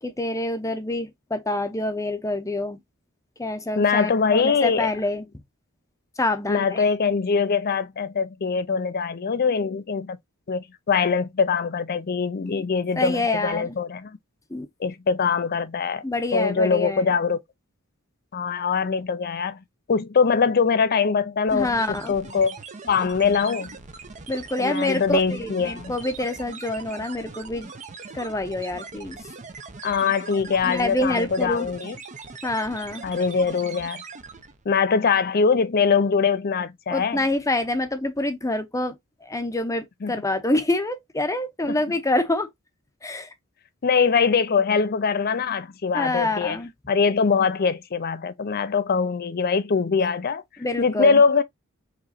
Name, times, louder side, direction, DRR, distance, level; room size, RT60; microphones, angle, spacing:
voice 1, 0.0-2.8 3.4-5.3 6.2-6.9 12.4-12.6 13.0-13.8 14.5-14.7 16.0-17.1 21.5-22.1 24.3-27.7 28.1-29.2 30.6-31.7 32.4-33.1 36.9-42.5 43.0-43.3 45.9-46.7 50.6-51.2, left 2 dB, 15° left, 0.8 m, -26 dB
voice 2, 3.8-4.9 6.5-10.2 10.5-14.1 14.8-16.0 16.3-17.4 18.3-19.6 19.9-22.6 22.9-23.8 24.6-25.9 29.8-32.0 33.0-34.0 34.7-37.2 40.0-40.1 41.7-41.8 43.8-46.6 46.9-50.4 50.8-51.4, left 5 dB, 45° left, 0.5 m, -22 dB
sound 1, 21.5-34.6, right 4 dB, 35° right, 0.7 m, -41 dB
4.9 x 3.1 x 2.7 m
head